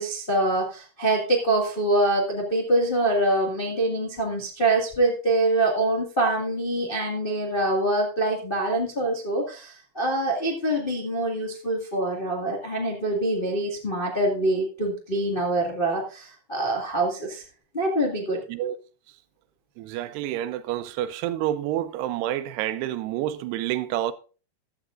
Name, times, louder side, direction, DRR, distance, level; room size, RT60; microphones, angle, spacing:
voice 1, 0.0-17.4 17.7-18.4, right 2 dB, 35° left, 0.8 m, -25 dB
voice 2, 19.8-24.1, right 12 dB, 90° right, 2.8 m, -28 dB
15.0 x 11.5 x 2.5 m
omnidirectional pair, 4.7 m